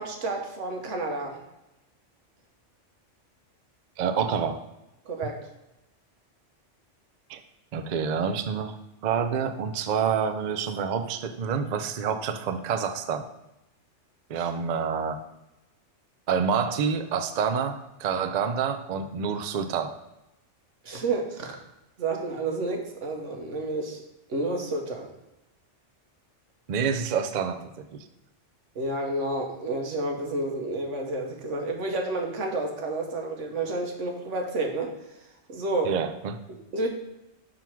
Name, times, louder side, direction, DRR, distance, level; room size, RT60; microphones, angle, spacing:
voice 1, 0.0-1.4 5.0-5.4 20.8-21.6 22.0-24.0 24.3-25.1 28.7-34.9 35.5-35.9 36.5-36.9, right 2 dB, 85° right, 2 dB, 1.3 m, -30 dB
voice 2, 4.0-4.6 7.3-7.4 7.7-8.8 9.0-13.3 14.3-15.2 16.3-20.0 26.7-28.1 35.8-36.4, right 6 dB, 55° right, 8 dB, 0.5 m, -28 dB
5.9 x 3.8 x 4.5 m, 0.94 s
omnidirectional pair, 1.2 m